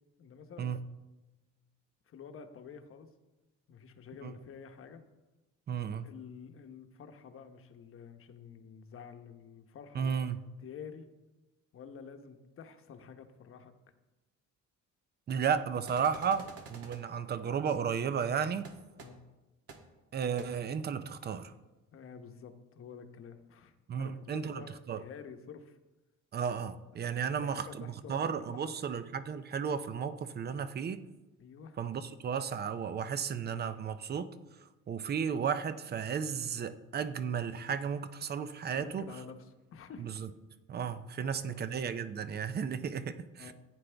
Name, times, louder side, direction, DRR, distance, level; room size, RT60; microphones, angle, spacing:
voice 1, 0.2-0.7 2.1-3.1 3.7-5.0 6.0-10.3 10.6-11.1 11.7-13.7 19.0-19.2 21.9-25.8 27.0-28.2 28.5-28.6 31.4-31.8 38.7-40.1 41.4-41.6 43.4-43.5, left 6 dB, 45° left, 1.0 m, -49 dB
voice 2, 5.7-6.1 9.9-10.4 15.3-18.7 20.1-21.5 23.9-25.0 26.3-31.0 31.8-34.3 34.6-39.2 40.0-40.3 40.7-43.5, right 7 dB, 35° right, 0.6 m, -34 dB
sound 1, 15.9-17.0 18.6-18.7 19.0-19.1 19.7-19.8 20.4-20.5, right 4 dB, 50° right, 1.5 m, -49 dB
15.0 x 9.6 x 3.4 m
cardioid pair, 150°, 31 cm